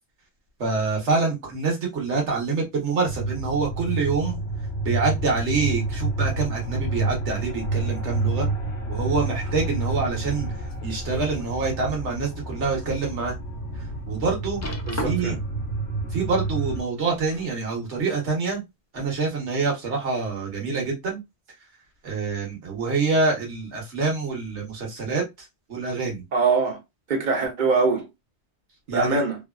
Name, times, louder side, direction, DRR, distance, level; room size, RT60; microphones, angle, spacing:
voice 1, 0.6-4.4 4.8-8.5 8.9-10.5 10.8-13.3 13.7-14.7 15.0-15.4 16.1-18.6 18.9-21.2 22.0-26.2 28.9-29.2, right 4 dB, 85° right, 1.5 m, -26 dB
sound 1, 3.0-16.8, right 2 dB, 70° left, 1.0 m, -29 dB
sound 2, 10.7-11.5 12.0-12.2 12.7-12.8 14.6-15.5 16.9-17.6 18.5-18.6, left 1 dB, 25° left, 0.3 m, -36 dB
voice 2, 14.9-15.4 26.3-26.8 27.1-28.1 28.9-29.4, right 4 dB, 50° right, 0.8 m, -23 dB
3.2 x 2.4 x 2.2 m
omnidirectional pair, 1.1 m